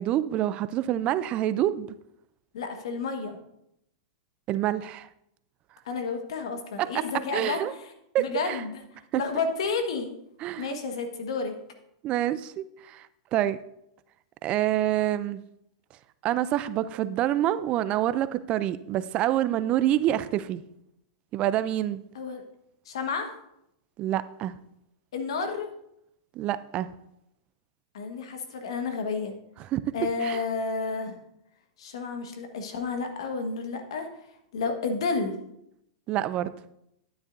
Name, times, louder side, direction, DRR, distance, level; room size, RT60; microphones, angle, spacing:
voice 1, 0.0-1.9 4.5-5.1 6.8-7.0 7.3-7.7 8.1-8.6 9.1-9.2 10.4-10.8 12.0-13.1 13.3-13.6 14.4-15.4 16.2-20.6 21.3-22.0 24.0-24.6 26.4-26.9 29.6-29.8 30.2-30.4 36.1-36.5, right 13 dB, 40° right, 15 dB, 0.4 m, -27 dB
voice 2, 2.5-3.4 5.8-7.6 8.2-8.8 9.1-10.1 10.6-11.5 22.1-22.4 22.8-23.3 25.1-25.7 27.9-29.3 29.9-31.2 31.8-34.1 34.5-35.4, left 4 dB, 70° left, 5 dB, 1.5 m, -31 dB
10.5 x 9.5 x 2.6 m, 0.78 s
hypercardioid pair, 105°, 3 cm